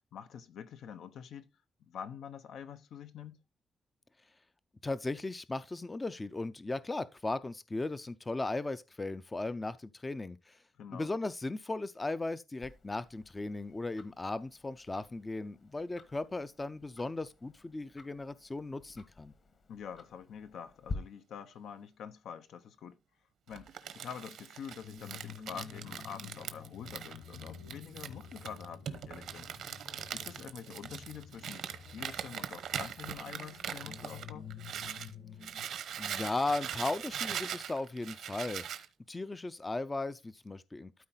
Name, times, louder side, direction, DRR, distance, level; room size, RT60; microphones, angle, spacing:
voice 1, 0.1-1.5 1.8-3.4 10.8-11.1 19.7-23.0 23.5-29.5 30.1-34.5, left 8 dB, 80° left, 0.9 m, -46 dB
voice 2, 4.8-10.6 10.9-19.3 36.0-38.6 39.1-41.1, left 2 dB, 15° left, 0.4 m, -37 dB
Tick-tock, 12.6-20.9, left 4 dB, 40° left, 1.4 m, -50 dB
Crumpling crinkling, 23.5-35.1 35.4-38.9, right 9 dB, 80° right, 1.0 m, -41 dB
sound 1, 24.8-35.6, left 7 dB, 60° left, 5.6 m, -50 dB
13.0 x 4.4 x 3.9 m
wide cardioid pair, 170°, 0 cm